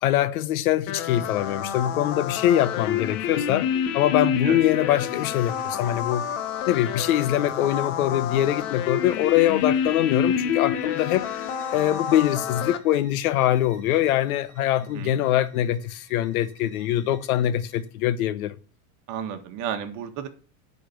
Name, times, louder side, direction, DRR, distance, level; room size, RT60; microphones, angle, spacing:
voice 1, 0.0-6.3 6.7-11.3 11.7-18.6, left 12 dB, 80° left, 0.9 m, -23 dB
sound 1, 0.9-12.8, left 8 dB, 60° left, 1.3 m, -28 dB
Bowed string instrument, 9.1-17.9, right 5 dB, 25° right, 3.9 m, -54 dB
voice 2, 19.1-20.3, right 8 dB, 45° right, 1.5 m, -32 dB
10.0 x 4.3 x 7.0 m
supercardioid pair, 145°, 43 cm